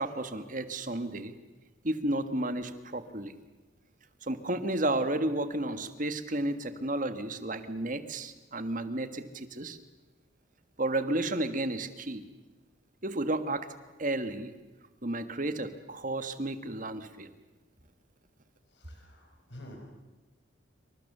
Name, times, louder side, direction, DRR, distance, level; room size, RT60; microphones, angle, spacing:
voice 1, 0.0-1.3 1.8-3.3 4.2-9.8 10.8-12.2 13.0-13.7 14.0-14.5 15.0-17.3, right 1 dB, 40° right, 10 dB, 1.6 m, -32 dB
voice 2, 18.7-19.8, left 1 dB, 60° left, 1 dB, 5.7 m, -49 dB
27.5 x 25.0 x 6.8 m, 1.2 s
head